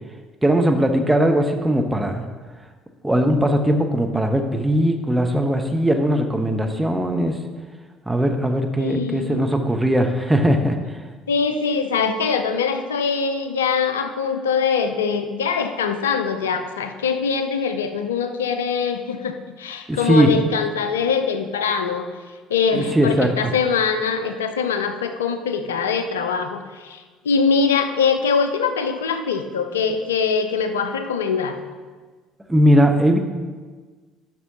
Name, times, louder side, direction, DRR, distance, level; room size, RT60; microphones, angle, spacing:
voice 1, 0.4-2.3 3.0-7.4 8.1-10.8 19.9-20.3 22.7-23.3 32.5-33.2, equal, 10° right, 4 dB, 0.9 m, -19 dB
voice 2, 8.8-9.5 11.3-22.1 22.5-31.6, left 5 dB, 80° left, 8 dB, 0.5 m, -23 dB
11.0 x 6.0 x 2.8 m, 1.4 s
hypercardioid pair, 55°, 0 cm